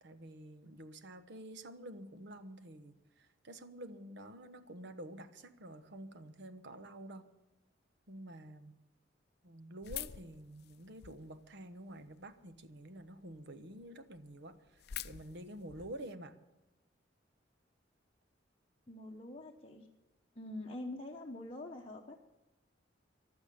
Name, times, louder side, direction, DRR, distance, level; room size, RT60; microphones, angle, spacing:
voice 1, 0.0-7.3 8.1-8.7 9.4-16.3, right 1 dB, 65° right, 10 dB, 1.1 m, -49 dB
sound 1, 9.8-11.4 11.9-12.6 13.0-13.1 13.3-13.4 13.8-13.9 14.1-16.1, left 10 dB, 60° left, 0.5 m, -46 dB
voice 2, 18.9-19.9 20.3-22.2, left 1 dB, 30° left, -1 dB, 1.1 m, -45 dB
15.0 x 11.5 x 6.9 m, 1.0 s
head